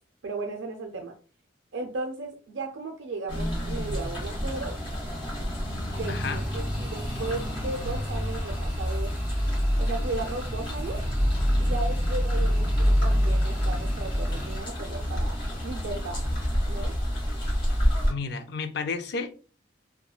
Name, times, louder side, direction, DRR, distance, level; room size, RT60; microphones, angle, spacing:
voice 1, 0.2-1.1 1.7-4.7 5.9-9.1 9.8-11.0 11.6-15.4 15.6-16.2 16.6-17.0, right 3 dB, 75° right, 0.4 m, -35 dB
sound 1, 3.3-18.1, equal, 30° left, 1.1 m, -27 dB
sound 2, 5.9-14.6, equal, 10° right, 1.2 m, -38 dB
voice 2, 6.1-6.4 18.1-19.3, left 4 dB, 60° left, 0.4 m, -32 dB
3.0 x 2.2 x 2.2 m
head